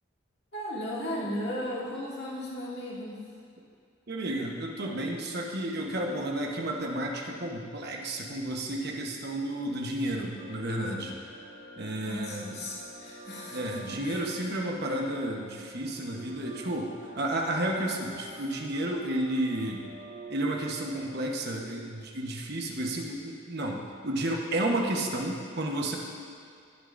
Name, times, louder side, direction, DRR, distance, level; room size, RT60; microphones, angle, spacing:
voice 1, 0.5-3.2 12.0-14.5 14.8-15.0, left 1 dB, 50° left, -7 dB, 2.3 m, -36 dB
voice 2, 4.1-11.2 11.8-12.6 13.5-19.8 20.3-26.0, right 1 dB, 50° right, 0 dB, 1.1 m, -32 dB
sound 1, 10.4-21.4, right 1 dB, 35° right, 1.4 m, -47 dB
20.0 x 6.9 x 2.6 m, 2.4 s
head